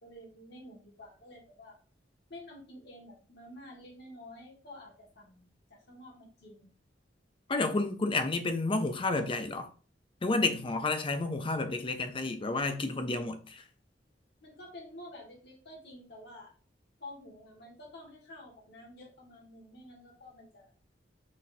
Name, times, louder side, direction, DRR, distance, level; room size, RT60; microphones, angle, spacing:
voice 1, 0.0-1.8 2.3-6.7 14.4-16.5 17.0-20.7, left 1 dB, 65° left, 1.6 m, -50 dB
voice 2, 7.5-9.7 10.2-13.6, left 3 dB, 30° left, 0.5 m, -30 dB
4.1 x 2.4 x 4.1 m
head